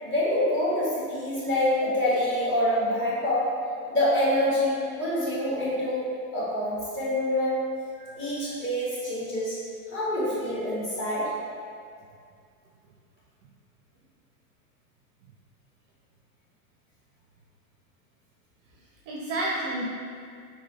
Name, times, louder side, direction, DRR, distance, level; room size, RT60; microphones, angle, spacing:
voice 1, 0.0-3.5 3.9-6.1 6.3-7.6 8.2-9.6 9.9-11.3, left 1 dB, 25° left, -9 dB, 1.4 m, -26 dB
voice 2, 8.0-8.5 19.1-19.8, right 2 dB, 40° right, -3 dB, 0.5 m, -32 dB
3.8 x 2.7 x 3.0 m, 2.3 s
hypercardioid pair, 95°, 47 cm